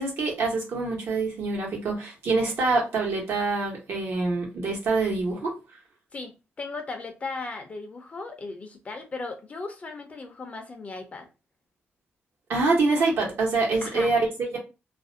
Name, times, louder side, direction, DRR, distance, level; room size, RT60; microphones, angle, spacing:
voice 1, 0.0-5.5 12.5-14.6, right 3 dB, 70° right, 1.0 m, -25 dB
voice 2, 6.6-11.3 13.8-14.1, left 3 dB, 35° left, 0.5 m, -37 dB
2.4 x 2.1 x 2.6 m
wide cardioid pair, 135°, 4 cm